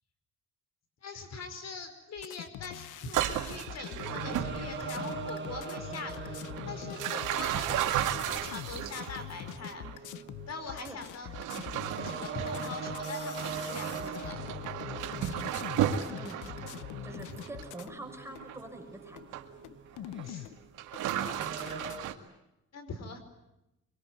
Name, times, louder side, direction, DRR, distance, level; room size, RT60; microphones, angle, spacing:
voice 1, 1.0-10.1 10.5-11.3 12.0-14.4 17.3-17.4 20.2-20.5 22.7-23.2, left 4 dB, 60° left, 9 dB, 4.9 m, -43 dB
sound 1, 2.2-18.0 18.3-18.5 19.2-19.3 19.6-20.6 20.9-22.0, left 13 dB, 85° left, 1.0 m, -44 dB
sound 2, 3.0-3.1 3.7-10.9 11.6-21.9, right 4 dB, 40° right, 4.5 m, -42 dB
sound 3, 3.0-5.3 5.5-5.9 6.4-10.0 10.6-10.8 11.3-17.8 18.4-18.6 19.3-19.4 19.9-20.3 20.8-22.1, right 11 dB, 90° right, 2.2 m, -35 dB
voice 2, 10.7-11.4 16.1-16.5 17.0-19.2, right 2 dB, 10° right, 4 dB, 5.6 m, -46 dB
24.5 x 23.0 x 9.5 m, 0.89 s
cardioid pair, 90°, 30 cm